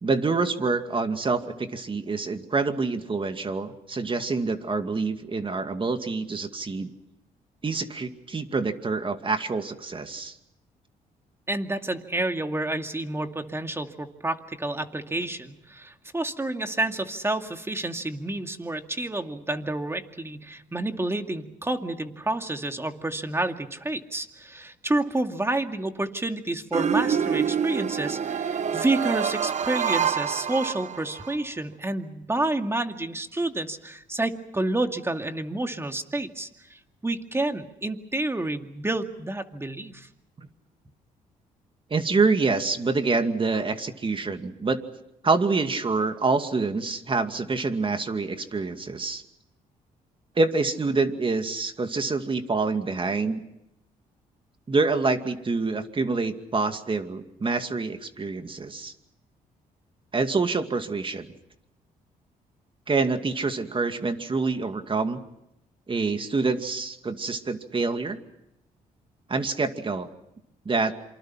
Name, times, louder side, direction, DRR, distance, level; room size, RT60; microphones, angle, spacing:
voice 1, 0.0-6.9 7.6-10.4 40.4-40.5 41.9-44.8 45.2-49.2 50.4-53.4 54.7-58.9 60.1-61.3 62.9-65.2 65.9-68.2 69.3-70.1 70.7-70.9, right 4 dB, 35° right, 7 dB, 2.4 m, -26 dB
voice 2, 11.5-40.1, right 2 dB, 15° right, 6 dB, 2.3 m, -29 dB
sound 1, 26.7-31.4, right 7 dB, 50° right, 1.1 m, -27 dB
27.5 x 25.0 x 5.9 m, 0.84 s
cardioid pair, 75°, 16 cm